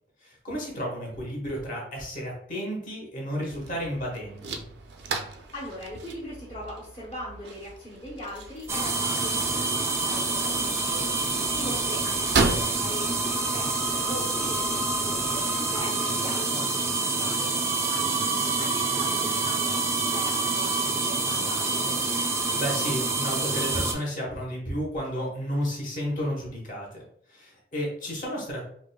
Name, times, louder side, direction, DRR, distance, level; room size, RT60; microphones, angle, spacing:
voice 1, 0.2-4.7 11.5-12.1 17.9-18.1 22.3-27.0 27.3-28.6, equal, 45° left, -2 dB, 1.1 m, -32 dB
sound 1, 3.5-15.8, right 3 dB, 75° right, 0.4 m, -35 dB
voice 2, 5.5-11.2 11.6-22.0, left 1 dB, 30° left, -8 dB, 0.8 m, -40 dB
sound 2, 8.7-23.9, right 3 dB, 15° right, 0.3 m, -27 dB
5.0 x 2.2 x 2.3 m, 0.65 s
head